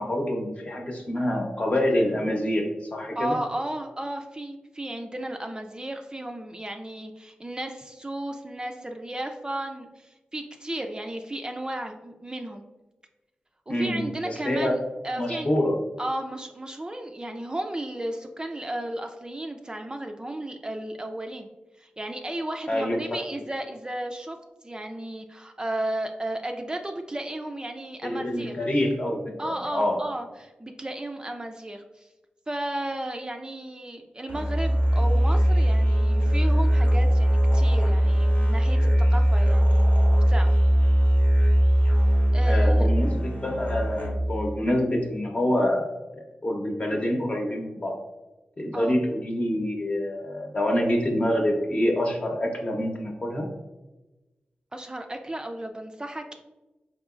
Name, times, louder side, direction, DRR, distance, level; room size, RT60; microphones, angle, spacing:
voice 1, 0.0-2.6 2.9-3.3 13.7-14.8 15.2-15.8 22.7-23.0 28.0-30.0 42.4-48.0 48.6-53.5, left 1 dB, 40° left, 1 dB, 0.8 m, -26 dB
voice 2, 3.2-12.6 13.7-14.8 15.0-15.5 16.0-21.5 21.8-24.4 24.6-28.6 29.4-32.1 32.5-40.6 42.0-42.9 48.7-49.0 54.7-56.4, right 1 dB, 25° right, 4 dB, 0.3 m, -34 dB
Musical instrument, 34.3-44.4, equal, 65° left, 1.0 m, -20 dB
3.9 x 2.9 x 2.4 m, 1.1 s
cardioid pair, 45°, 4 cm